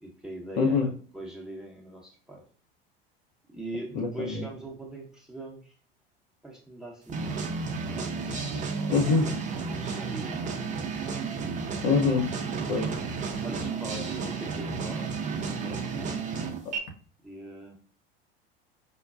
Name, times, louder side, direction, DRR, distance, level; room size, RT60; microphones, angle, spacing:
voice 1, 0.0-2.4 3.5-5.8 6.4-7.4 7.7-8.6 9.5-10.9 13.4-15.1 15.4-16.3 17.2-17.8, right 1 dB, ahead, -2 dB, 0.8 m, -42 dB
voice 2, 0.6-0.9 3.9-4.5 8.9-9.4 11.8-12.3 12.7-12.9 16.6-16.7, left 4 dB, 60° left, 2 dB, 0.8 m, -24 dB
sound 1, 7.1-16.8, right 5 dB, 25° right, 0.6 m, -32 dB
5.2 x 2.2 x 2.4 m, 0.43 s
hypercardioid pair, 85°, 29 cm